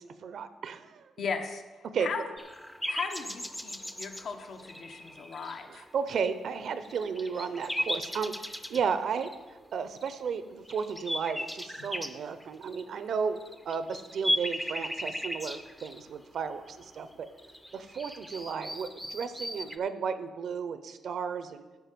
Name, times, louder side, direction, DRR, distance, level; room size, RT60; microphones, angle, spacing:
voice 1, 0.0-1.1 1.9-2.1 5.7-13.4 13.7-17.3 17.7-21.6, right 6 dB, 60° right, 11 dB, 0.6 m, -34 dB
voice 2, 1.2-2.3 2.9-5.9, left 5 dB, 60° left, 5 dB, 1.0 m, -37 dB
sound 1, 2.4-6.5 6.8-9.4 10.0-10.3 10.7-19.8, equal, 5° left, 0.6 m, -37 dB
9.2 x 5.5 x 6.8 m, 1.2 s
cardioid pair, 125°, 0 cm